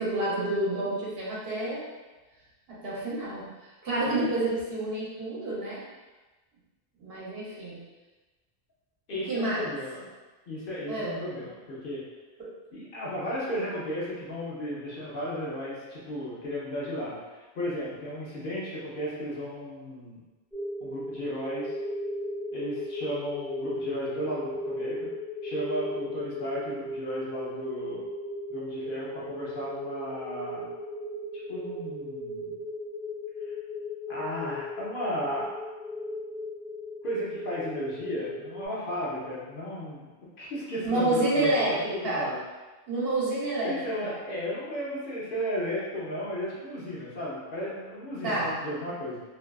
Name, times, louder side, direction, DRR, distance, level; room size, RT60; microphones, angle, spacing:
voice 1, 0.0-1.9 2.7-3.5 3.8-5.8 7.0-7.8 9.3-9.7 10.9-11.2 12.4-12.5 40.8-42.3 42.9-43.8 44.0-44.1 48.2-48.6, right 2 dB, 70° right, -7 dB, 1.0 m, -29 dB
voice 2, 9.1-10.1 10.5-12.0 12.7-20.2 20.8-21.8 22.5-25.0 25.4-28.0 28.5-30.7 31.5-32.6 34.1-35.5 37.0-40.1 40.4-42.4 43.6-49.2, equal, 60° left, -7 dB, 0.8 m, -34 dB
sound 1, 20.5-38.7, left 1 dB, 5° right, 0.4 m, -36 dB
2.6 x 2.2 x 2.2 m, 1.2 s
omnidirectional pair, 1.1 m